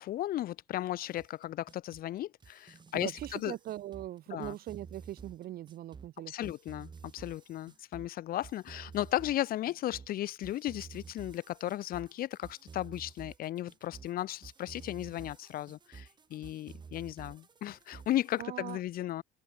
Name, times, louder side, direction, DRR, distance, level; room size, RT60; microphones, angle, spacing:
voice 1, 0.0-3.5 4.3-4.6 6.3-19.2, left 13 dB, 60° left, 0.8 m, -35 dB
sound 1, 1.0-18.4, right 5 dB, 25° right, 0.9 m, -51 dB
voice 2, 2.9-6.5 18.4-18.8, right 13 dB, 65° right, 1.2 m, -41 dB
cardioid pair, 110°, 17 cm